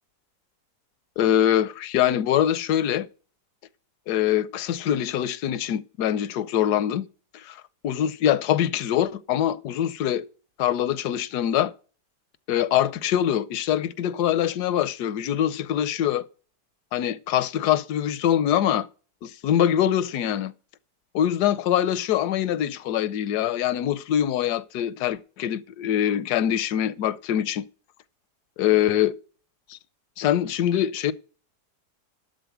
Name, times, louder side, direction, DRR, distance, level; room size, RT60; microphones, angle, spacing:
voice 1, 1.2-3.1 4.1-7.1 7.3-10.2 10.6-11.7 12.5-16.3 16.9-18.9 19.2-20.5 21.1-27.6 28.6-29.1 29.7-29.8 30.2-31.1, left 11 dB, 75° left, 1.2 m, -24 dB
12.0 x 4.0 x 8.1 m
omnidirectional pair, 1.8 m